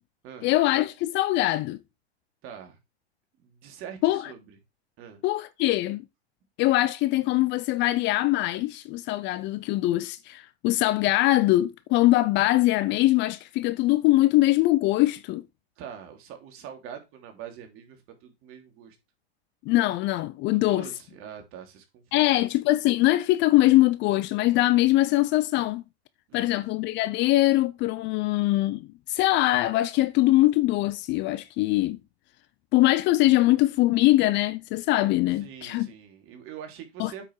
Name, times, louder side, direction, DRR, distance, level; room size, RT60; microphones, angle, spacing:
voice 1, 0.4-1.8 4.0-4.3 5.2-6.0 6.6-15.4 19.7-20.9 22.1-25.8 26.3-32.0 32.7-35.9 37.0-37.1, left 17 dB, 35° left, 0.6 m, -22 dB
voice 2, 2.4-2.8 3.4-4.6 5.0-5.2 15.8-19.0 20.5-22.5 26.3-26.6 35.3-37.2, right 8 dB, 40° right, 3.0 m, -44 dB
8.2 x 5.9 x 4.7 m
hypercardioid pair, 115°, 32 cm